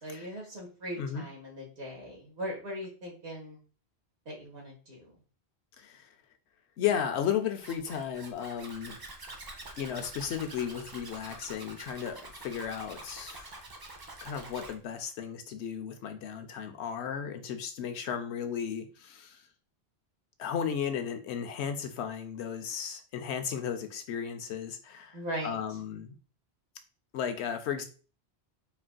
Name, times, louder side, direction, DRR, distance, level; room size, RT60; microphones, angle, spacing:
voice 1, 0.0-3.6 4.2-5.1 25.1-25.6, equal, 85° right, -2 dB, 1.6 m, -39 dB
voice 2, 5.8-6.1 6.8-9.0 9.8-13.6 14.2-19.4 20.4-26.1 27.1-27.9, left 8 dB, 90° left, 6 dB, 0.9 m, -34 dB
Zipper (clothing), 7.6-14.7, right 2 dB, 35° right, 0.4 m, -46 dB
4.3 x 2.4 x 2.2 m, 0.38 s
omnidirectional pair, 1.1 m